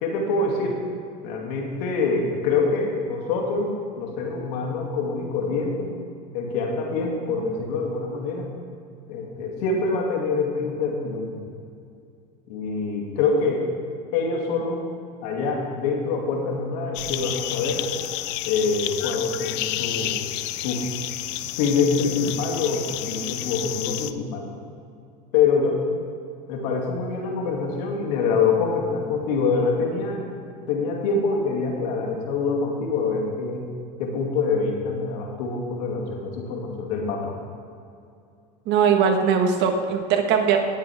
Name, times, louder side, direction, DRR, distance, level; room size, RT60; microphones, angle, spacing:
voice 1, 0.0-0.8 1.2-5.9 6.3-8.5 9.1-11.5 12.5-13.7 14.1-14.8 15.2-17.8 18.5-20.2 20.6-20.9 21.6-24.5 25.3-25.8 26.5-30.2 30.7-33.7 34.0-37.3, left 4 dB, 75° left, 0 dB, 2.6 m, -25 dB
sound 1, 16.9-24.1, left 15 dB, 55° left, 0.6 m, -30 dB
voice 2, 38.7-40.6, right 6 dB, 55° right, 4 dB, 1.6 m, -20 dB
18.5 x 8.2 x 3.6 m, 2.4 s
supercardioid pair, 100°, 21 cm